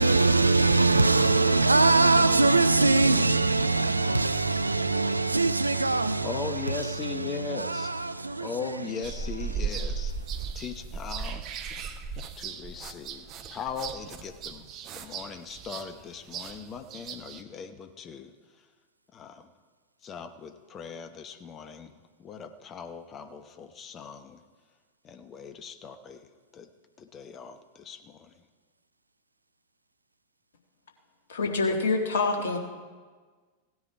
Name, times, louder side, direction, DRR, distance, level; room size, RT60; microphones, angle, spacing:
voice 1, 0.0-6.4 6.7-8.5, right 3 dB, 80° right, 0.5 m, -22 dB
voice 2, 6.2-7.9 8.4-10.1 10.5-12.0 12.4-14.7 14.9-18.3 19.1-19.5 20.0-24.4 25.0-26.3 26.5-26.7 27.0-28.4, left 6 dB, 25° left, 0.9 m, -39 dB
sound 1, 9.0-17.4, right 6 dB, 35° right, 0.8 m, -36 dB
voice 3, 31.3-32.6, left 3 dB, 65° left, 1.6 m, -26 dB
16.5 x 9.6 x 4.7 m
figure-of-eight pair, 90°, 0 cm